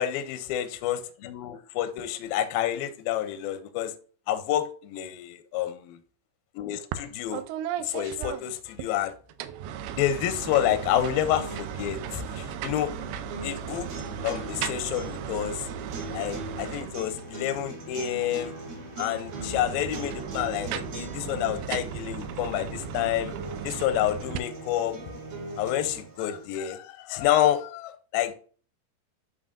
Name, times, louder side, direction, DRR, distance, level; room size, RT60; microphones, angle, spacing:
voice 1, 0.0-3.9 4.3-4.6 4.9-6.0 6.6-7.4 7.8-9.1 9.9-12.9 13.4-13.9 14.2-15.7 16.1-18.5 19.0-23.3 23.6-25.0 25.6-28.3, left 11 dB, 80° left, 2.2 m, -28 dB
sound 1, 6.9-7.1 7.3-8.9 9.3-17.4 19.1-24.4, right 9 dB, 80° right, 2.5 m, -36 dB
sound 2, 8.8-8.9 9.0-26.5, right 1 dB, 35° right, 1.4 m, -45 dB
sound 3, 10.5-26.5, right 1 dB, 60° right, 4.0 m, -42 dB
11.0 x 3.9 x 2.5 m
omnidirectional pair, 4.7 m